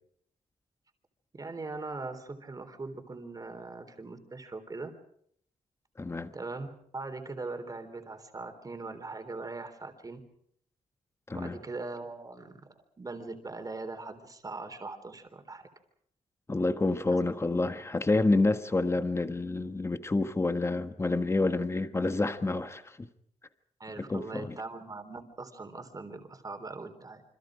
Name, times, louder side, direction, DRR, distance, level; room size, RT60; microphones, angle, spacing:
voice 1, 1.3-4.9 6.3-6.7 6.9-10.2 11.3-12.5 13.0-15.6 23.8-27.2, right 3 dB, 25° right, 3.7 m, -40 dB
voice 2, 6.0-6.3 11.3-11.6 16.5-23.1 24.0-24.6, left 2 dB, 20° left, 1.4 m, -28 dB
28.0 x 26.0 x 5.1 m
wide cardioid pair, 145°, 14 cm